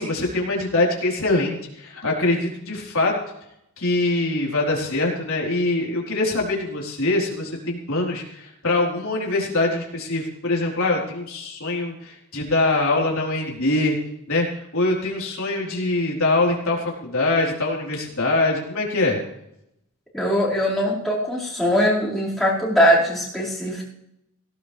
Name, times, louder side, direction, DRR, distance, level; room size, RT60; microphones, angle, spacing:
voice 1, 0.0-3.1 3.8-14.0 14.3-14.5 14.7-19.2, left 2 dB, 75° left, -2 dB, 4.2 m, -23 dB
voice 2, 20.1-23.9, equal, ahead, -8 dB, 5.2 m, -21 dB
17.5 x 17.5 x 3.5 m, 0.79 s
head